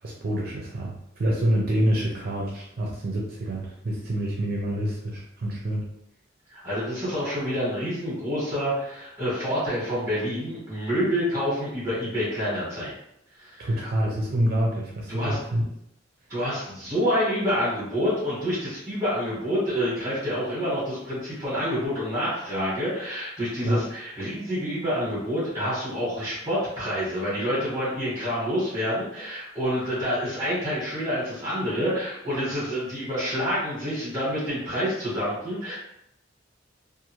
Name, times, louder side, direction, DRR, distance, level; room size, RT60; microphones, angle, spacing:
voice 1, 0.0-5.9 13.6-15.6 23.6-23.8, right 1 dB, 50° right, -2 dB, 0.5 m, -27 dB
voice 2, 6.5-12.9 13.4-13.7 15.1-15.4 16.3-35.7, equal, 20° right, -9 dB, 1.3 m, -27 dB
2.6 x 2.4 x 2.9 m, 0.78 s
head